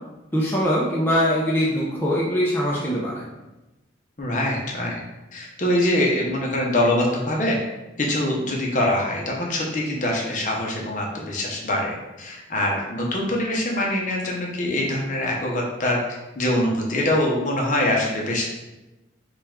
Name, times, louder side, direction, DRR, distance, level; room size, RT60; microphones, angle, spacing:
voice 1, 0.3-3.2, equal, 10° left, -6 dB, 0.6 m, -22 dB
voice 2, 4.2-5.0 5.3-7.6 8.1-16.0 16.4-18.4, left 1 dB, 40° left, -2 dB, 0.8 m, -24 dB
5.6 x 2.4 x 3.6 m, 1.0 s
head